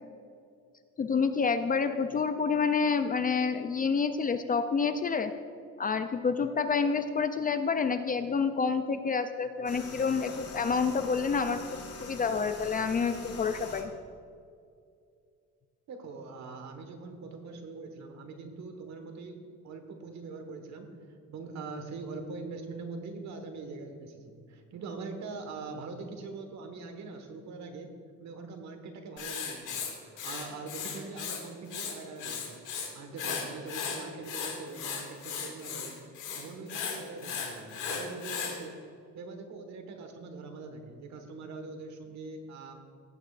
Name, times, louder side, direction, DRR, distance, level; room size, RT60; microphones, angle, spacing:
voice 1, 1.0-5.3 5.8-13.9, left 5 dB, 30° left, 9 dB, 0.4 m, -28 dB
sound 1, 9.7-13.8, left 2 dB, 50° left, 1.7 m, -43 dB
voice 2, 15.9-19.4 19.6-20.9 21.3-27.9 28.2-32.6 32.9-35.9 36.3-38.7 39.1-42.8, right 3 dB, 60° right, 5 dB, 1.4 m, -42 dB
Writing, 29.2-31.4 31.7-32.9 33.2-38.6, left 6 dB, 75° left, 2.2 m, -36 dB
17.5 x 8.7 x 2.5 m, 2.3 s
cardioid pair, 140°, 31 cm